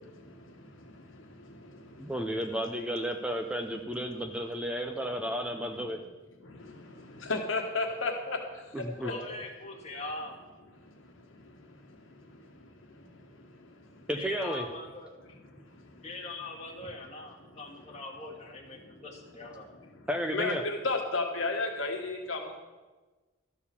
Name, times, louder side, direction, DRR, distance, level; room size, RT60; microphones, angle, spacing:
voice 1, 2.0-6.0 8.7-9.1 14.1-14.6 20.1-20.6, equal, 5° right, 5 dB, 0.5 m, -33 dB
voice 2, 2.7-3.6 4.9-5.2 9.0-10.4 14.1-15.1 16.0-19.7, left 2 dB, 35° left, -2 dB, 1.8 m, -43 dB
voice 3, 7.2-8.4 9.0-9.1 20.3-22.6, left 3 dB, 70° left, 2 dB, 1.5 m, -31 dB
13.0 x 4.8 x 6.9 m, 1.3 s
head